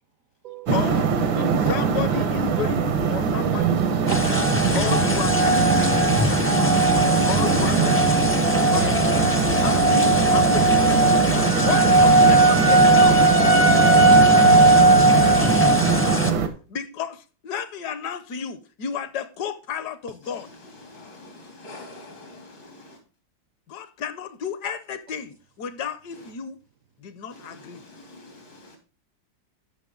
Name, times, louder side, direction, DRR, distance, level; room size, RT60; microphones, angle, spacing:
voice 1, 0.7-1.1 1.7-4.0 4.7-6.8 7.2-9.1 9.3-11.2 11.6-14.3 16.7-20.5 23.7-26.6 27.0-27.8, left 7 dB, 65° left, 1.2 m, -33 dB
sound 1, 0.7-16.5, right 5 dB, 85° right, 1.8 m, -23 dB
voice 2, 1.3-1.7 2.6-2.8 3.3-5.1 7.5-8.5 15.3-15.6, right 7 dB, 70° right, 0.8 m, -33 dB
sound 2, 4.1-16.3, right 1 dB, 20° left, 0.3 m, -18 dB
voice 3, 13.9-15.3 15.8-15.9 20.2-23.0 26.1-26.3 27.3-28.8, left 2 dB, 85° left, 3.9 m, -46 dB
13.5 x 5.6 x 3.8 m
omnidirectional pair, 2.1 m